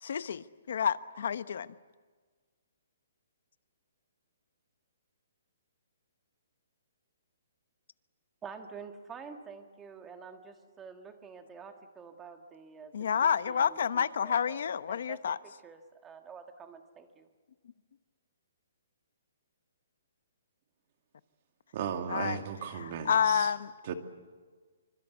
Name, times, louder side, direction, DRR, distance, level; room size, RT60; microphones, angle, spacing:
voice 1, 0.0-1.7 12.9-15.4 22.1-22.4 22.7-23.7, left 7 dB, 60° left, 14 dB, 1.0 m, -29 dB
voice 2, 8.4-12.9 13.2-17.3, right 5 dB, 10° right, 6 dB, 1.6 m, -48 dB
voice 3, 21.7-23.5 23.8-23.9, right 8 dB, 35° right, 6 dB, 2.2 m, -36 dB
27.0 x 25.0 x 8.3 m, 1.4 s
hypercardioid pair, 170°, 0 cm